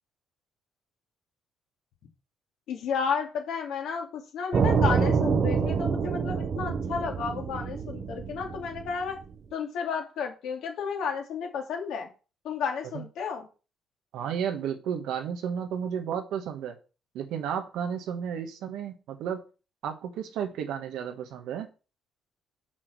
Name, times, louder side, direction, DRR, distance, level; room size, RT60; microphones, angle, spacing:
voice 1, 2.7-9.2 9.5-12.1 12.4-13.5, left 6 dB, 85° left, 2 dB, 2.2 m, -32 dB
sound 1, 4.5-9.3, right 6 dB, 55° right, 0.9 m, -27 dB
voice 2, 14.1-16.8 17.1-19.4 19.8-21.7, right 8 dB, 90° right, 5 dB, 1.3 m, -32 dB
6.2 x 6.0 x 4.7 m, 0.34 s
cardioid pair, 90°, 0 cm